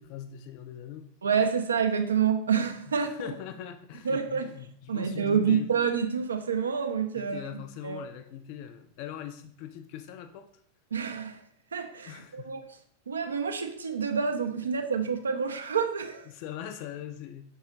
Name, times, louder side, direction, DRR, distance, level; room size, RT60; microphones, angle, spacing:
voice 1, 0.0-1.1 2.9-5.7 7.2-10.5 12.1-12.5 16.3-17.4, left 10 dB, 45° left, 8 dB, 0.3 m, -41 dB
voice 2, 1.2-3.2 4.0-4.5 4.9-8.0 10.9-11.4 11.7-12.6 13.1-16.3, right 6 dB, 70° right, 6 dB, 0.4 m, -28 dB
4.7 x 2.3 x 2.8 m, 0.64 s
figure-of-eight pair, 90°, 0 cm